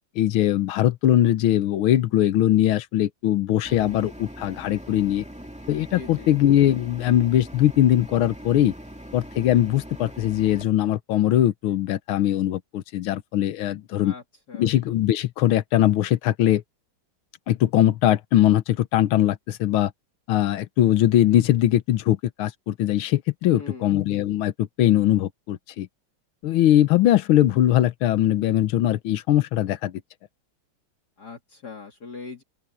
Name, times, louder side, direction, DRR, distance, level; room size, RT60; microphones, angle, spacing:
voice 1, 0.2-5.2 5.7-8.7 9.1-14.1 14.5-16.6 17.5-19.9 20.3-25.9 26.4-29.9, left 12 dB, 85° left, 1.7 m, -21 dB
sound 1, 3.6-10.7, equal, 5° right, 2.0 m, -41 dB
voice 2, 6.0-6.3 14.0-14.2 14.5-14.7 23.4-23.9 31.2-32.4, left 4 dB, 50° left, 2.7 m, -40 dB
open air
omnidirectional pair, 2.3 m